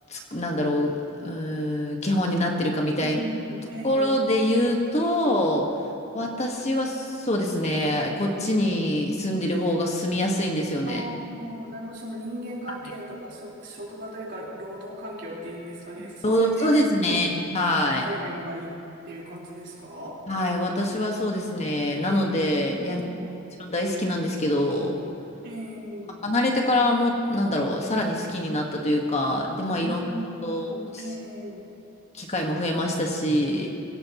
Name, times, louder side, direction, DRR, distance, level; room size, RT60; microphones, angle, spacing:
voice 1, 0.1-3.2 3.8-5.7 6.1-11.0 16.2-18.0 20.3-23.1 23.6-25.0 26.2-30.0 30.4-30.8 32.1-33.7, left 1 dB, 30° left, 0 dB, 1.7 m, -25 dB
voice 2, 3.0-4.3 10.8-16.7 17.1-17.3 18.0-18.8 19.0-20.2 22.8-23.4 25.4-26.2 29.8-31.7, equal, 55° right, -5 dB, 4.4 m, -37 dB
25.0 x 16.5 x 3.1 m, 2.8 s
head